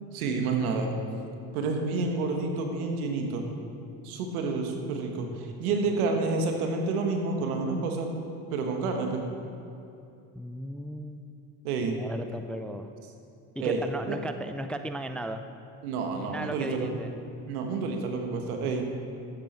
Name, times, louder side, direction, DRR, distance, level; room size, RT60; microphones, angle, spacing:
voice 1, 0.1-0.9 1.5-3.4 4.0-8.1 8.5-9.2 11.6-12.0 13.6-14.2 15.8-16.9 17.5-18.9, right 4 dB, 90° right, 3 dB, 1.6 m, -29 dB
voice 2, 10.4-11.2 11.9-12.9 13.6-15.4 16.2-17.1, right 1 dB, 5° left, 8 dB, 0.3 m, -36 dB
12.0 x 9.1 x 4.5 m, 2.7 s
supercardioid pair, 100°, 42 cm